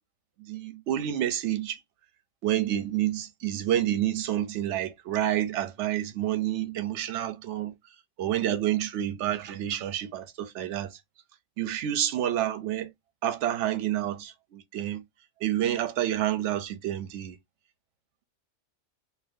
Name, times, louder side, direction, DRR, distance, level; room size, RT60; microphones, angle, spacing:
voice 1, 0.5-1.8 2.4-7.7 8.2-10.9 11.6-12.9 13.2-15.0 15.4-17.4, right 12 dB, 75° right, 0.9 m, -29 dB
2.6 x 2.4 x 3.4 m
omnidirectional pair, 1.2 m